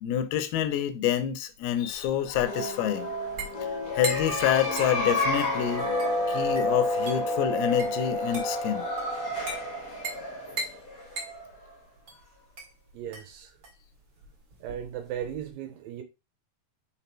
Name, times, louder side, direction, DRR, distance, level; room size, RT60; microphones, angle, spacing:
voice 1, 0.0-3.1 3.6-5.9 6.3-8.9, left 10 dB, 80° left, 2.6 m, -27 dB
sound 1, 1.5-15.5, right 2 dB, 40° right, 1.9 m, -41 dB
sound 2, 2.2-11.7, left 1 dB, 60° left, 0.9 m, -30 dB
voice 2, 12.9-13.5 14.6-16.0, right 10 dB, 75° right, 2.4 m, -36 dB
6.0 x 3.6 x 4.4 m
omnidirectional pair, 4.4 m